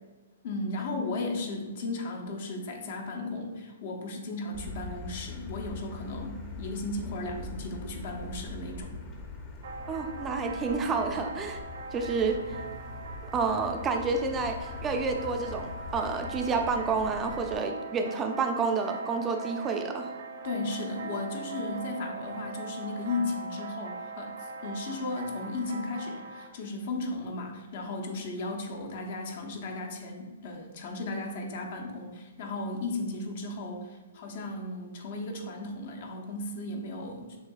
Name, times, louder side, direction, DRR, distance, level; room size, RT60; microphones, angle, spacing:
voice 1, 0.4-9.0 20.4-24.3 24.6-37.4, left 2 dB, 55° left, 2 dB, 0.8 m, -35 dB
Motor vehicle (road), 4.5-17.5, left 3 dB, 25° left, 0.7 m, -42 dB
sound 1, 9.6-26.5, right 4 dB, 75° right, 0.8 m, -41 dB
voice 2, 9.9-11.6 11.9-12.4 13.3-20.1, right 4 dB, 20° right, 5 dB, 0.4 m, -29 dB
6.5 x 2.7 x 2.4 m, 1.3 s
hypercardioid pair, 140°, 0 cm